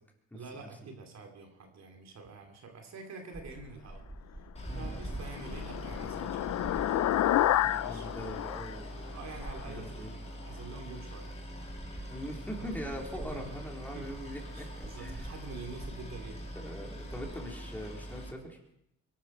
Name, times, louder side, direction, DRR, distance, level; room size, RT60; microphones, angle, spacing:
voice 1, 0.3-4.0 4.4-8.0 9.1-10.1 10.5-11.3 13.3-13.6 13.9-14.1 14.4-16.4, right 4 dB, 60° right, 3 dB, 3.0 m, -47 dB
sound 1, 3.3-7.5 8.0-10.0 10.8-10.9 11.1-17.5, right 1 dB, 10° right, 1.4 m, -47 dB
Boat Water vehicle, 4.5-18.3, equal, 20° left, 3.4 m, -44 dB
sound 2, 4.9-9.6, left 13 dB, 65° left, 0.6 m, -30 dB
voice 2, 7.6-9.2 9.7-10.2 12.1-15.2 16.6-18.6, equal, 5° left, -1 dB, 3.8 m, -42 dB
22.5 x 13.0 x 4.4 m, 0.78 s
cardioid pair, 90°, 30 cm